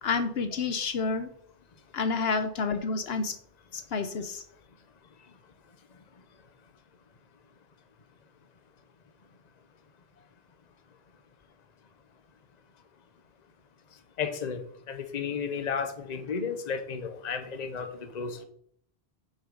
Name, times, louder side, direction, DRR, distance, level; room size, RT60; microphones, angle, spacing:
voice 1, 0.0-1.3 1.9-3.4 3.7-4.4, left 4 dB, 75° left, 1.0 m, -29 dB
voice 2, 14.2-14.6 14.9-18.4, left 6 dB, 45° left, 0.9 m, -33 dB
7.5 x 6.3 x 5.2 m
omnidirectional pair, 1.1 m